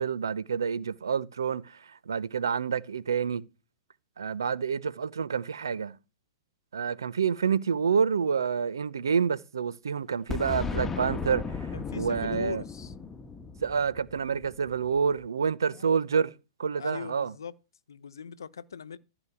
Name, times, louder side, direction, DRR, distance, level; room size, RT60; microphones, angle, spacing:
voice 1, 0.0-3.5 4.2-6.0 6.7-12.6 13.6-16.3 16.6-17.3, right 6 dB, 80° right, 0.8 m, -28 dB
Boom, 10.3-15.0, left 5 dB, 15° left, 1.5 m, -36 dB
voice 2, 11.7-12.9 15.7-15.9 16.8-17.5 17.9-19.0, left 7 dB, 80° left, 0.9 m, -40 dB
14.5 x 5.0 x 7.1 m
hypercardioid pair, 115°, 2 cm